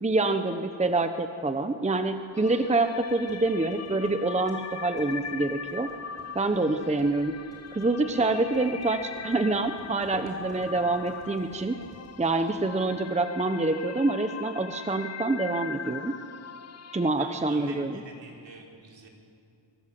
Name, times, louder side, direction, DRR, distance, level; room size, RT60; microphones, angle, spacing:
voice 1, 0.0-5.9 6.3-7.3 7.7-11.8 12.2-16.1 16.9-18.0, right 2 dB, 15° right, 7 dB, 1.0 m, -26 dB
sound 1, 2.1-13.2, left 1 dB, 10° left, 6.4 m, -52 dB
sound 2, 2.3-17.1, left 6 dB, 30° left, 0.8 m, -41 dB
voice 2, 10.5-11.0 17.2-19.1, right 4 dB, 60° right, 0 dB, 4.8 m, -47 dB
24.5 x 24.5 x 7.7 m, 2.5 s
wide cardioid pair, 130°, 48 cm